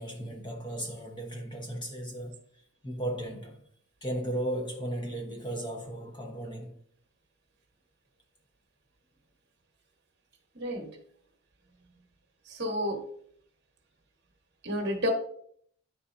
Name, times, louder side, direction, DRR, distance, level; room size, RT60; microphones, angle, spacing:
voice 1, 0.0-2.4 2.8-3.6 4.0-6.7, right 1 dB, 20° left, 1.0 m, -35 dB
voice 2, 10.5-11.0 12.5-13.1 14.6-15.1, equal, 50° right, 1.1 m, -31 dB
9.9 x 4.2 x 2.6 m
head